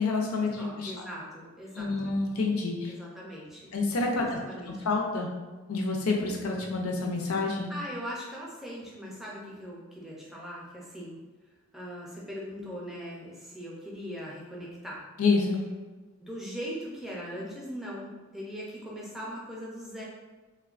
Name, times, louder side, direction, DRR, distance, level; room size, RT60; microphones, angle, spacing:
voice 1, 0.0-0.9 1.8-2.9 3.7-4.4 4.9-5.3 5.7-7.7 15.2-15.6, left 3 dB, 85° left, 1 dB, 0.5 m, -28 dB
voice 2, 0.6-2.1 2.9-3.7 4.2-4.7 7.7-11.2 11.7-15.0 16.2-20.0, equal, ahead, -5 dB, 0.5 m, -40 dB
3.2 x 2.2 x 2.4 m, 1.3 s
head